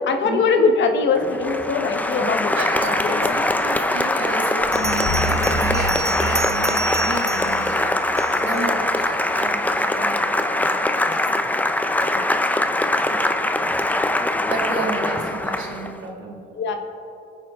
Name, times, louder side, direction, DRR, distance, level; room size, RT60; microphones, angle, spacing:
voice 1, 0.0-3.3 8.5-8.6 12.1-12.3 15.0-15.1 16.6-16.8, left 4 dB, 65° left, 5 dB, 1.3 m, -22 dB
Applause, 1.2-16.0, left 1 dB, 10° left, 0.7 m, -22 dB
voice 2, 2.2-11.5 12.9-13.2 14.5-16.5, right 4 dB, 85° right, 0 dB, 2.3 m, -32 dB
sound 1, 4.6-8.7, equal, 80° left, 1.3 m, -30 dB
Bell, 4.7-8.6, right 3 dB, 15° right, 0.3 m, -30 dB
20.0 x 9.6 x 3.8 m, 2.8 s
cardioid pair, 90°, 20 cm